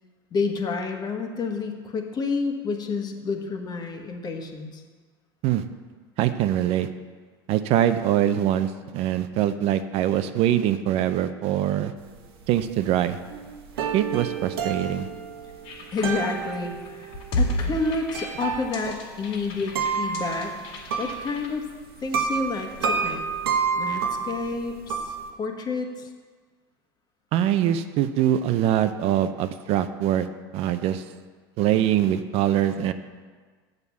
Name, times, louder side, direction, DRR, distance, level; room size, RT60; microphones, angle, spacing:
voice 1, 0.3-4.8 15.9-20.6 21.0-21.7 22.0-23.2 23.8-26.1, left 4 dB, 35° left, 4 dB, 1.4 m, -29 dB
voice 2, 6.2-6.9 7.5-11.9 12.5-13.2 13.9-15.1 27.3-30.3 30.5-31.0 31.6-32.9, right 11 dB, 55° right, 10 dB, 0.6 m, -23 dB
sound 1, 12.2-12.3 12.6-12.7 12.9-21.7 22.0-25.3, right 6 dB, 90° right, 1.1 m, -30 dB
sound 2, 15.6-21.5, left 1 dB, 70° left, 2.1 m, -32 dB
7.3 x 6.5 x 7.0 m, 1.5 s
supercardioid pair, 100°, 12 cm